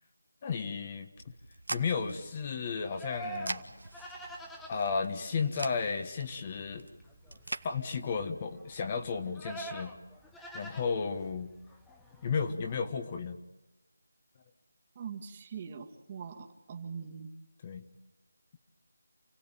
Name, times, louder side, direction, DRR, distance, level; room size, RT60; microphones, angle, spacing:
voice 1, 0.4-1.1 1.7-3.7 4.7-6.9 7.6-9.9 10.5-11.5 12.2-13.4 17.6-17.9, left 5 dB, 25° left, 6 dB, 1.4 m, -33 dB
sound 1, 1.2-7.7, right 2 dB, 80° right, 1.7 m, -44 dB
Livestock farm animals working animals, 1.8-12.8, right 1 dB, 5° left, 1.2 m, -47 dB
voice 2, 15.0-17.3, right 6 dB, 25° right, 4 dB, 1.9 m, -42 dB
29.0 x 17.0 x 9.0 m, 1.1 s
figure-of-eight pair, 165°, 0 cm